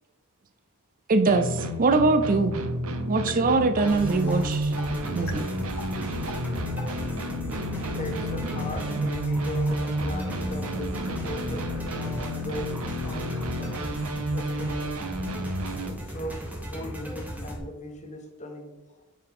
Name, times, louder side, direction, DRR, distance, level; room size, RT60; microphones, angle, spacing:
voice 1, 1.1-2.6 3.1-4.7 5.1-5.5, right 3 dB, 40° right, 9 dB, 0.4 m, -22 dB
sound 1, 1.3-15.9, right 1 dB, 75° right, 0.9 m, -30 dB
sound 2, 3.3-3.4 3.8-3.9 4.3-4.4 4.8-4.9 5.3-5.4 5.8-5.9 6.3-6.4 6.8-6.9 7.3-9.0, left 1 dB, 55° left, 1.6 m, -41 dB
sound 3, 3.9-17.6, equal, 5° right, 1.2 m, -37 dB
voice 2, 7.0-13.9 14.3-14.9 15.4-18.7, left 1 dB, 35° left, 3 dB, 1.2 m, -39 dB
9.1 x 4.8 x 3.7 m, 1.1 s
head